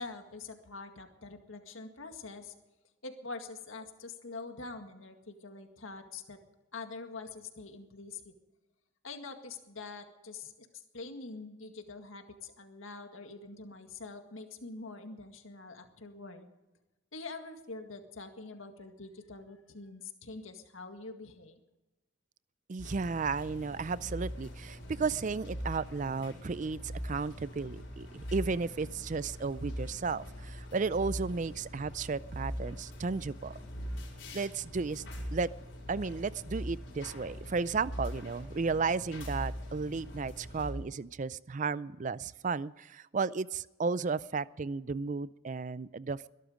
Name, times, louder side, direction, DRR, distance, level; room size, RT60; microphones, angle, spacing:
voice 1, 0.0-2.5 3.0-6.4 6.7-8.3 9.0-16.5 17.1-21.6, left 3 dB, 90° left, 6 dB, 2.0 m, -45 dB
voice 2, 22.7-33.5 34.3-35.0 35.3-35.5 35.9-46.3, right 4 dB, 40° right, 18 dB, 0.4 m, -34 dB
sound 1, 22.8-40.7, equal, 65° left, 5.0 m, -42 dB
22.0 x 12.0 x 5.1 m, 1.1 s
head